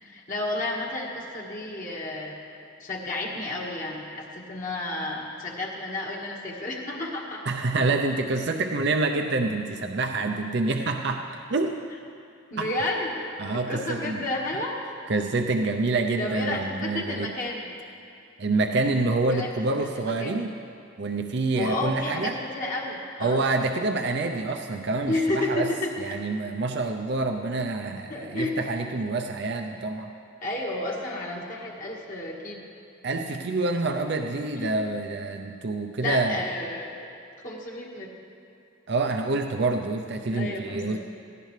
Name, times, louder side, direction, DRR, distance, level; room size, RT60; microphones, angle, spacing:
voice 1, 0.0-2.3 2.8-7.4 10.7-10.9 12.5-13.3 13.5-14.7 16.2-17.7 19.3-19.5 19.8-20.4 21.5-23.5 25.1-25.9 28.1-28.6 30.4-32.7 34.5-34.8 36.0-37.0 37.4-38.1 40.3-41.0, left 2 dB, 45° left, -2 dB, 1.7 m, -31 dB
voice 2, 7.5-11.7 12.6-12.7 13.4-14.2 15.1-17.3 18.4-20.5 21.0-22.3 23.2-25.7 26.0-30.1 33.0-36.4 38.9-41.0, right 3 dB, 60° right, 4 dB, 0.6 m, -27 dB
17.5 x 15.5 x 3.3 m, 2.6 s
head